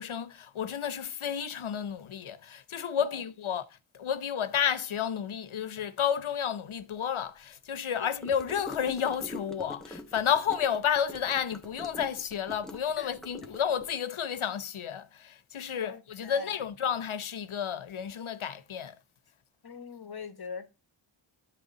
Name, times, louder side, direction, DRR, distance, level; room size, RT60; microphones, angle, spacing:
voice 1, 0.0-19.0, left 8 dB, 85° left, 0.8 m, -31 dB
Gurgling / Car passing by / Sink (filling or washing), 8.2-13.9, left 1 dB, ahead, 1.1 m, -44 dB
voice 2, 15.7-16.6 19.6-20.7, left 5 dB, 50° left, 1.2 m, -43 dB
10.0 x 3.5 x 6.8 m
wide cardioid pair, 75°, 47 cm